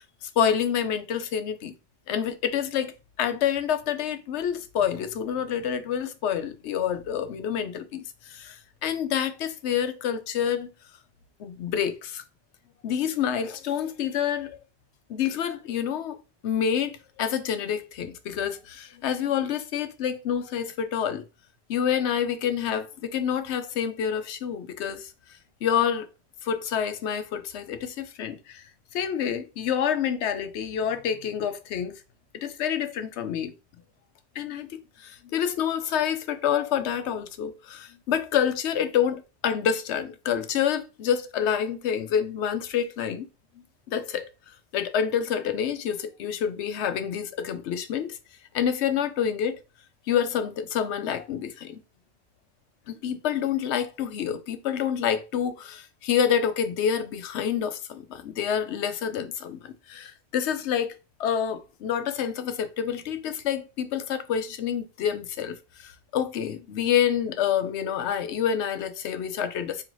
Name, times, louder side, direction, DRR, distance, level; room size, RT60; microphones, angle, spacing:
voice 1, 0.0-1.7 2.1-2.9 3.2-10.7 11.4-12.2 12.8-14.5 15.1-21.2 21.7-25.1 25.6-26.1 26.4-28.6 28.9-32.0 32.4-33.5 34.4-43.3 43.9-44.3 44.7-48.2 48.5-49.6 50.1-51.8 53.0-60.9 61.2-69.8, left 8 dB, 90° left, 0.9 m, -28 dB
3.9 x 3.0 x 3.0 m
omnidirectional pair, 1.1 m